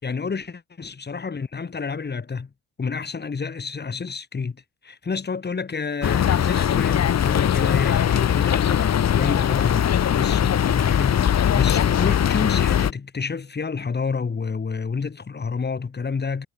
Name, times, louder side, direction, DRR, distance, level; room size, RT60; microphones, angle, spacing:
voice 1, 0.0-2.5 2.8-16.5, left 5 dB, 35° left, 5.6 m, -29 dB
sound 1, 6.0-12.9, left 9 dB, 60° left, 3.2 m, -20 dB
cardioid pair, 90°, 30 cm